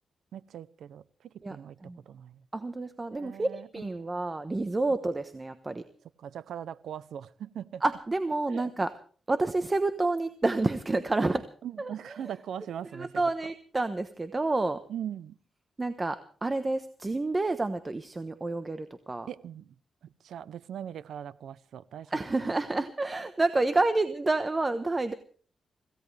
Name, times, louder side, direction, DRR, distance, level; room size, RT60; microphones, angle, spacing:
voice 1, 0.3-2.4 3.1-4.1 4.9-5.0 6.2-7.8 8.5-8.7 11.6-13.2 14.9-15.3 19.3-19.7 20.2-22.2, right 9 dB, 85° right, 18 dB, 0.7 m, -40 dB
voice 2, 2.5-5.8 7.8-8.9 9.3-11.4 11.8-11.9 12.9-14.8 15.8-19.3 22.1-25.1, right 2 dB, 25° right, 10 dB, 1.1 m, -29 dB
25.5 x 16.5 x 3.4 m, 0.44 s
cardioid pair, 90°, 0 cm